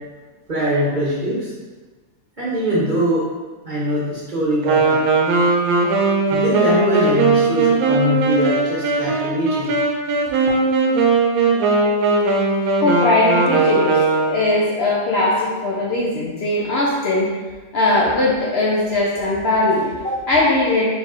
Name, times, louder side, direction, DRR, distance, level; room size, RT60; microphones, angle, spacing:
voice 1, 0.5-1.5 2.4-3.3 3.6-5.0 6.3-9.7, equal, 40° right, -6 dB, 0.9 m, -22 dB
Wind instrument woodwind instrument, 4.6-14.5, right 3 dB, 85° right, 1.1 m, -18 dB
voice 2, 12.8-17.3 17.7-20.8, left 2 dB, 60° left, -5 dB, 0.7 m, -19 dB
4.3 x 3.3 x 3.0 m, 1.3 s
omnidirectional pair, 1.5 m